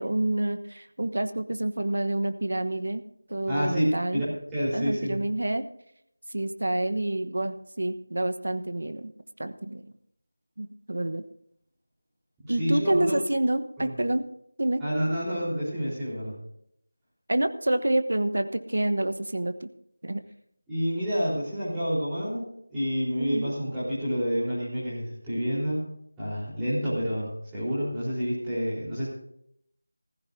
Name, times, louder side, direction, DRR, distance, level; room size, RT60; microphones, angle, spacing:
voice 1, 0.0-3.0 3.3-4.3 4.7-5.7 6.3-9.1 9.4-9.8 10.6-11.2 12.5-14.2 14.6-14.8 17.3-19.7 20.0-20.2 23.2-23.5, right 1 dB, 70° right, 10 dB, 1.1 m, -28 dB
voice 2, 3.5-4.2 4.5-5.2 12.6-13.1 13.8-13.9 14.8-16.4 20.7-25.9 26.2-29.1, equal, 5° right, -13 dB, 4.0 m, -28 dB
18.0 x 15.5 x 2.7 m, 0.73 s
figure-of-eight pair, 180°, 0 cm